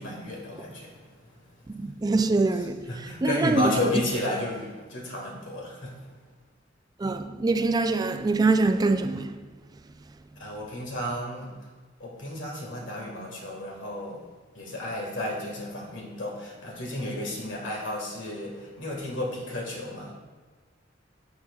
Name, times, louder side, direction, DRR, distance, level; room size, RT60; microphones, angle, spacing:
voice 1, 0.0-1.4 2.9-6.0 10.4-11.5 12.0-14.2 14.5-20.1, left 1 dB, 70° left, 1.8 m, -32 dB
voice 2, 1.7-3.8 7.0-9.4, right 3 dB, 20° right, 0.3 m, -24 dB
11.5 x 7.7 x 2.3 m
head